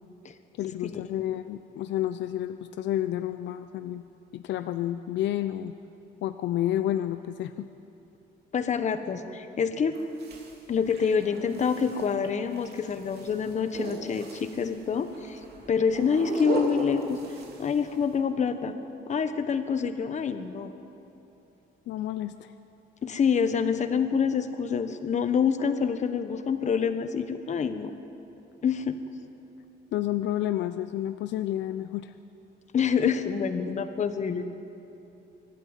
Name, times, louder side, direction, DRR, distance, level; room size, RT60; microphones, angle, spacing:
voice 1, 0.6-4.0 4.3-5.7 6.2-7.7 21.9-22.5 29.9-32.1, left 12 dB, 80° left, 10 dB, 0.6 m, -30 dB
voice 2, 8.5-10.0 10.7-15.4 15.7-17.2 17.6-18.7 19.1-20.7 23.0-27.9 28.6-29.0 32.7-34.4, left 6 dB, 40° left, 9 dB, 1.2 m, -26 dB
sound 1, 9.9-18.2, right 3 dB, 60° right, 3.1 m, -38 dB
24.0 x 12.0 x 9.0 m, 2.9 s
cardioid pair, 140°, 18 cm